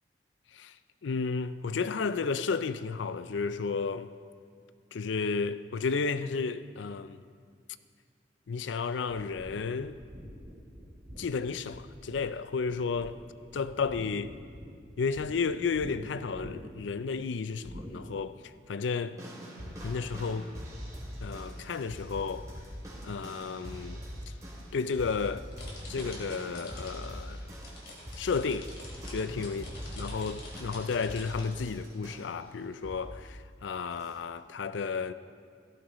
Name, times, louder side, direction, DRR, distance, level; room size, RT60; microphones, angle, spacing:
voice 1, 1.0-4.1 4.9-7.2 8.5-10.0 11.2-13.2 13.5-14.3 15.0-19.2 19.8-20.5 21.2-22.5 23.0-24.0 24.7-25.5 25.9-27.4 28.2-28.7 29.1-29.6 30.0-35.1, left 5 dB, 80° left, 0.4 m, -32 dB
sound 1, 9.1-12.3 12.7-13.3 13.6-15.3 15.7-15.9 16.3-16.9 17.6-17.9, equal, 55° right, 3.3 m, -46 dB
sound 2, 19.2-32.4 32.8-33.2 34.0-34.1, equal, 20° right, 3.2 m, -43 dB
sound 3, 25.5-27.1 27.4-31.6, left 2 dB, 60° left, 3.0 m, -47 dB
16.5 x 14.0 x 3.1 m
head